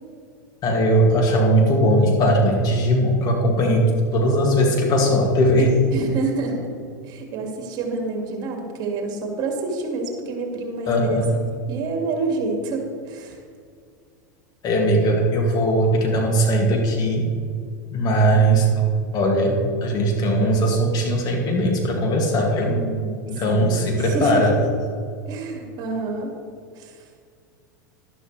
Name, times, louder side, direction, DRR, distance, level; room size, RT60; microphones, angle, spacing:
voice 1, 0.6-5.7 10.9-11.3 14.6-17.2 17.9-18.7 19.1-22.8 23.3-24.5, right 1 dB, 40° left, 0 dB, 2.5 m, -19 dB
voice 2, 5.9-6.7 7.0-11.2 11.7-13.4 22.7-24.4 25.3-26.3 26.8-27.0, right 3 dB, 45° right, 1 dB, 2.4 m, -28 dB
11.5 x 11.5 x 3.4 m, 2.2 s
hypercardioid pair, 95°, 10 cm